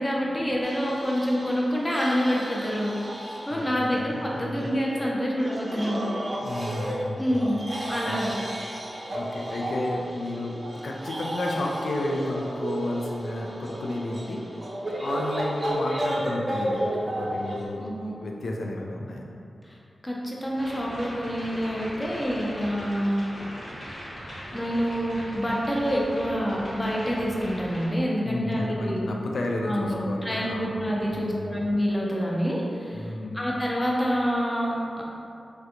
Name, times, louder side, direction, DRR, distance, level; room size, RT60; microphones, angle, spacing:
voice 1, 0.0-2.9 3.5-6.3 7.2-7.6 7.9-8.3 17.8-18.1 19.6-19.8 20.0-23.3 24.5-29.0 29.6-33.1 33.3-35.0, equal, 15° left, -4 dB, 0.5 m, -27 dB
sound 1, 0.6-17.7, right 1 dB, 40° right, 0.5 m, -33 dB
voice 2, 3.5-4.7 6.4-7.3 8.0-8.2 9.1-10.6 10.8-14.6 15.0-19.3 28.2-31.6 32.9-33.5, left 1 dB, 85° left, 0 dB, 0.4 m, -32 dB
sound 2, 20.5-27.9, equal, 55° left, 0.9 m, -40 dB
3.3 x 2.4 x 2.8 m, 2.5 s
wide cardioid pair, 85°, 0 cm